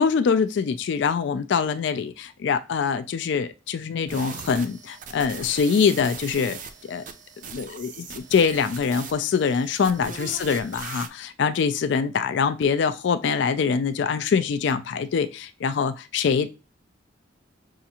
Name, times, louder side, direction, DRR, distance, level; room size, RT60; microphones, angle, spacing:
voice 1, 0.0-6.6 6.9-7.0 7.5-16.6, left 6 dB, 65° left, 0.3 m, -24 dB
sound 1, 4.1-11.1, right 6 dB, 40° right, 0.4 m, -40 dB
5.6 x 2.5 x 2.8 m
head